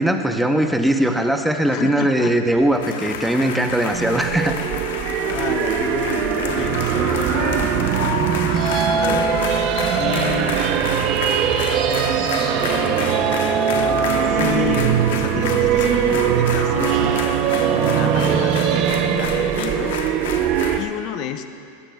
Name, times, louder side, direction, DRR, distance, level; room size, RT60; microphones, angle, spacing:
voice 1, 0.0-4.6, right 1 dB, ahead, 5 dB, 0.8 m, -20 dB
voice 2, 1.7-2.3 4.9-8.6 9.0-9.3 9.9-10.6 12.1-13.2 14.2-20.0 20.8-21.5, left 10 dB, 45° left, 8 dB, 0.7 m, -30 dB
sound 1, 2.4-19.5, right 2 dB, 25° right, 2.2 m, -41 dB
sound 2, 2.8-20.9, left 7 dB, 80° left, 1.1 m, -31 dB
sound 3, 3.9-20.8, right 8 dB, 40° right, 0.7 m, -20 dB
20.0 x 15.0 x 2.3 m, 2.7 s
supercardioid pair, 140°, 0 cm